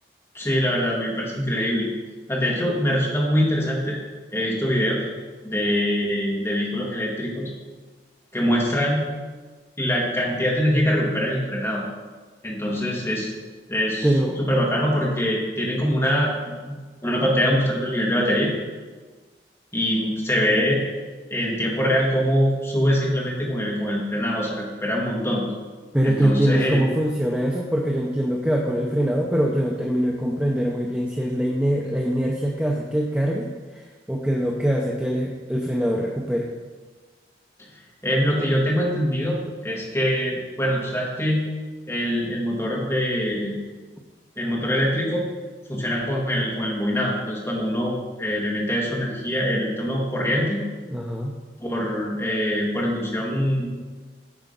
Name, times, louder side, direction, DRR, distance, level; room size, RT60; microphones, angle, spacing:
voice 1, 0.3-1.9 2.3-4.0 4.3-5.1 5.4-7.5 8.3-9.0 9.8-11.8 12.4-13.3 13.7-14.1 14.4-16.8 17.0-18.5 19.7-20.8 21.3-25.4 26.0-26.8 38.0-39.4 39.6-41.4 41.9-43.5 44.4-45.2 45.7-50.6 51.6-53.7, equal, 15° left, -4 dB, 1.7 m, -23 dB
voice 2, 14.0-14.4 25.9-33.8 34.1-36.5 50.9-51.3, equal, 5° right, -1 dB, 0.5 m, -23 dB
9.9 x 4.8 x 5.2 m, 1.4 s
head